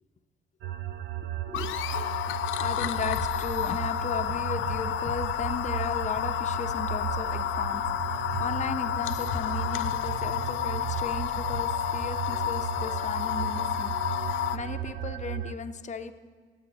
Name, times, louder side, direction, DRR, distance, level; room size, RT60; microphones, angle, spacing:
sound 1, 0.6-15.5, right 11 dB, 70° right, 0.5 m, -36 dB
voice 1, 1.2-14.3 14.5-16.1, left 5 dB, 35° left, 8 dB, 0.7 m, -36 dB
sound 2, 1.5-14.6, left 12 dB, 80° left, 0.4 m, -30 dB
17.5 x 7.8 x 2.8 m, 1.5 s
cardioid pair, 90°, 20 cm